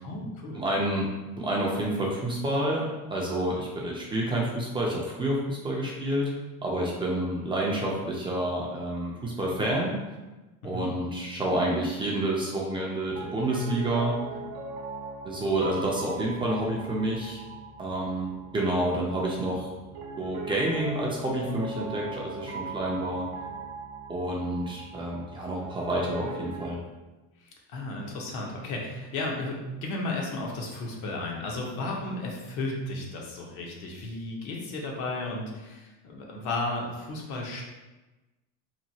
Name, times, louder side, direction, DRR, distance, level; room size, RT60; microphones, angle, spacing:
voice 1, 0.0-0.6 10.6-10.9 27.4-37.6, left 2 dB, 60° left, -1 dB, 0.8 m, -34 dB
voice 2, 0.6-1.1 1.4-6.3 6.6-10.0 10.6-14.2 15.2-17.4 17.8-19.7 20.2-23.3 24.1-26.8, right 1 dB, 15° right, -4 dB, 0.4 m, -29 dB
Piano, 13.0-26.8, right 3 dB, 85° right, 0.6 m, -40 dB
2.9 x 2.2 x 2.7 m, 1.1 s
cardioid pair, 125°, 32 cm